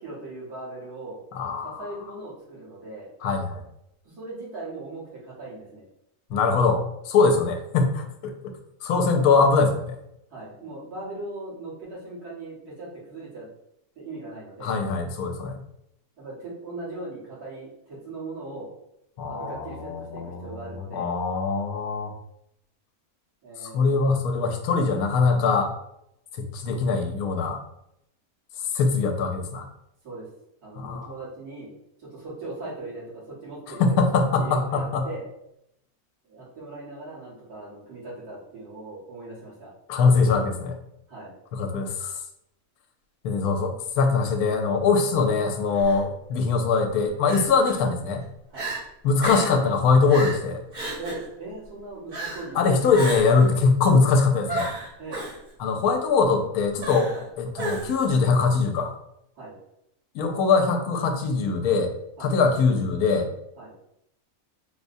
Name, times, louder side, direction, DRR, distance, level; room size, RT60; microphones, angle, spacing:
voice 1, 0.0-1.2 1.6-3.1 4.0-5.8 10.3-13.5 14.0-14.8 16.2-18.7 19.3-21.1 23.4-24.0 30.0-30.3 30.6-31.7 32.0-34.0 34.4-35.2 36.2-39.7 41.1-41.3 45.0-45.1 47.5-47.6 48.5-48.7 51.0-52.9 55.0-55.2 57.1-57.3 59.4-59.6 62.2-62.3 63.6-63.7, right 2 dB, 75° right, -7 dB, 2.1 m, -39 dB
voice 2, 1.3-1.9 3.2-3.6 6.3-8.3 8.8-10.0 14.6-15.6 19.2-22.1 23.6-25.7 26.4-27.6 28.7-29.7 30.8-31.1 33.8-35.1 39.9-40.8 41.5-42.2 43.2-48.2 49.0-50.6 52.6-54.7 55.6-57.1 57.4-58.9 60.1-61.9 62.2-63.3, left 4 dB, 75° left, 5 dB, 1.1 m, -22 dB
Crying sobbing, 45.7-46.0 47.3-47.8 48.2-48.3 48.5-48.8 49.2-49.6 50.1-50.4 50.7-51.3 52.1-52.5 52.9-53.5 54.5-55.4 56.8-57.2 57.6-58.1, right 2 dB, 60° right, 1.9 m, -32 dB
4.7 x 2.1 x 2.6 m, 0.79 s
omnidirectional pair, 1.6 m